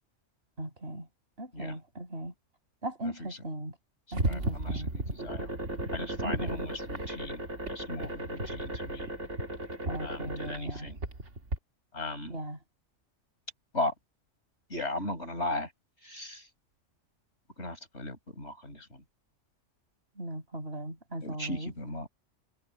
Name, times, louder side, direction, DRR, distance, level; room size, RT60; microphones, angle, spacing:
voice 1, 0.6-1.1 1.4-2.3 2.8-3.8 4.1-4.9 6.2-6.6 9.9-10.9 12.3-12.6 20.2-21.7, right 1 dB, 55° right, 6.4 m, -38 dB
sound 1, 4.1-11.6, right 1 dB, 70° right, 2.9 m, -35 dB
voice 2, 4.2-5.5 5.9-9.1 10.0-11.0 11.9-12.4 13.7-13.9 14.7-15.7 16.0-16.5 17.6-19.0 21.2-22.1, left 2 dB, 65° left, 6.3 m, -37 dB
omnidirectional pair, 1.2 m